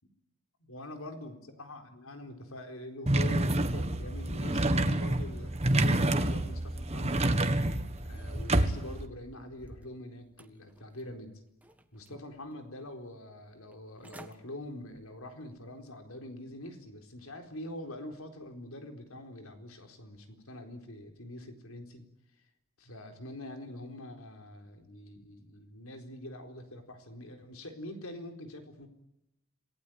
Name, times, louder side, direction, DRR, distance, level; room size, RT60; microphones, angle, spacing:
voice 1, 0.7-7.3 8.0-11.4 11.9-22.1 22.8-28.9, left 1 dB, 75° left, 6 dB, 4.2 m, -44 dB
sound 1, 3.1-9.1, right 1 dB, 30° right, 1.6 m, -28 dB
sound 2, 8.0-9.9 10.4-11.2 11.6-12.5 12.9-13.0 13.7-13.8 14.0-14.4 14.8-15.1 15.6-15.7, equal, 5° right, 1.5 m, -48 dB
27.0 x 19.0 x 9.3 m, 0.85 s
head